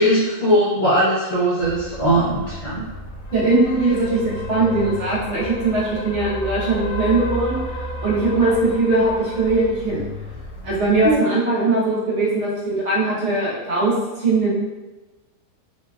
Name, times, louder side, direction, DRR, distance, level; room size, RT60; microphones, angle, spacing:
voice 1, 0.0-2.8 11.0-11.3, right 1 dB, 45° left, -10 dB, 0.6 m, -19 dB
sound 1, 1.6-11.2, left 1 dB, 85° left, 1.2 m, -32 dB
voice 2, 3.3-7.6 8.0-10.0 10.6-14.5, right 2 dB, 50° right, -6 dB, 1.1 m, -20 dB
3.2 x 2.8 x 2.3 m, 1.2 s
omnidirectional pair, 1.7 m